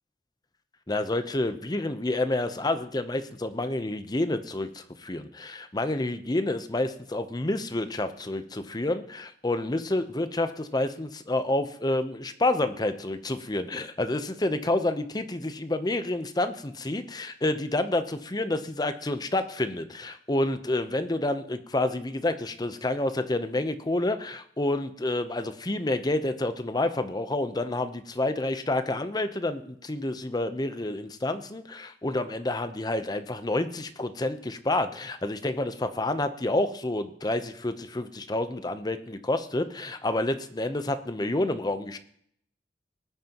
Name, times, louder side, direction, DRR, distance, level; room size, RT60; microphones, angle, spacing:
voice 1, 0.9-42.0, left 2 dB, 25° left, 9 dB, 0.8 m, -29 dB
19.0 x 9.4 x 3.0 m, 0.66 s
head